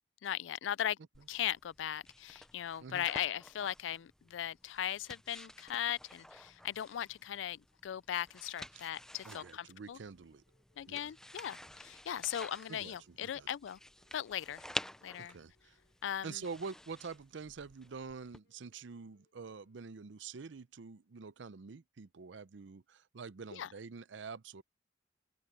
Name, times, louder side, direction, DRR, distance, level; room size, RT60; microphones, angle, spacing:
voice 1, 0.2-1.0 1.3-10.0 10.8-13.8 14.1-14.6 15.0-15.4 16.0-16.4 23.5-23.7, left 10 dB, 90° left, 0.4 m, -38 dB
sound 1, 1.1-18.4, left 1 dB, 5° left, 0.5 m, -50 dB
voice 2, 9.2-10.4 10.9-11.1 12.7-13.5 15.2-15.8 16.2-24.6, right 5 dB, 80° right, 0.6 m, -46 dB
Wind instrument woodwind instrument, 9.7-20.6, left 2 dB, 65° left, 7.8 m, -80 dB
open air
head